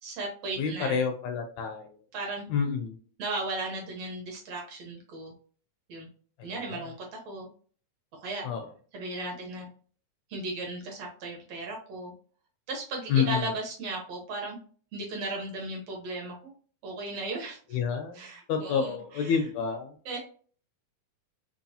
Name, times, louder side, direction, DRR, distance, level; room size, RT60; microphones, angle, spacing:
voice 1, 0.0-1.0 2.1-2.5 3.2-5.3 5.9-6.1 6.4-7.5 8.2-8.5 8.9-9.7 10.3-12.1 12.7-14.6 14.9-16.5 16.8-17.6 18.1-19.4 20.1-20.2, right 2 dB, 70° right, 0 dB, 1.9 m, -36 dB
voice 2, 0.6-1.9 2.5-3.0 6.4-6.5 8.4-8.6 13.1-13.5 17.7-18.2 18.5-19.9, left 6 dB, 80° left, 4 dB, 1.8 m, -28 dB
4.7 x 2.9 x 2.7 m, 0.43 s
omnidirectional pair, 3.5 m